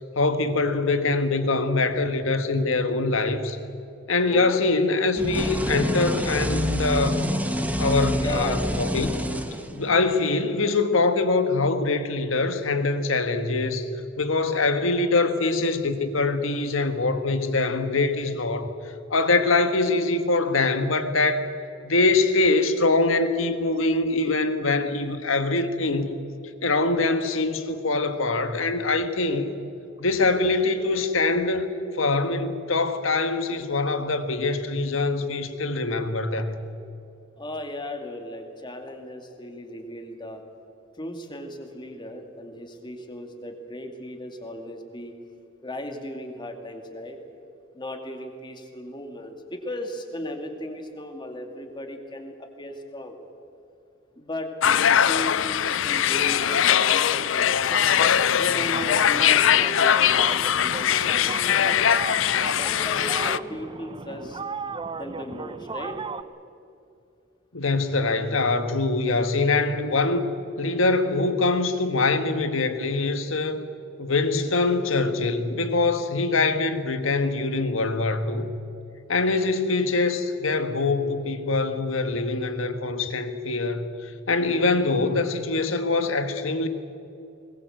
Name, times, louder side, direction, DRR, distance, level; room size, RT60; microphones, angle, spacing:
voice 1, 0.1-3.6 4.1-7.2 7.8-9.1 9.7-13.9 14.2-18.7 19.1-21.5 21.8-26.2 26.6-29.5 30.0-36.6 67.5-70.3 70.6-73.7 74.0-78.5 79.1-86.7, left 3 dB, 90° left, 1.7 m, -23 dB
voice 2, 4.3-4.6 8.2-8.7 37.4-40.4 41.0-45.1 45.6-47.2 47.7-53.2 54.2-57.5 58.4-62.3 62.6-64.4 64.9-66.0, left 1 dB, 25° left, 2.5 m, -36 dB
sound 1, 5.2-10.1, equal, 10° right, 1.3 m, -27 dB
sound 2, 54.6-63.4, left 9 dB, 70° left, 0.5 m, -21 dB
sound 3, 57.7-66.2, right 4 dB, 25° right, 0.6 m, -36 dB
21.5 x 20.0 x 8.0 m
head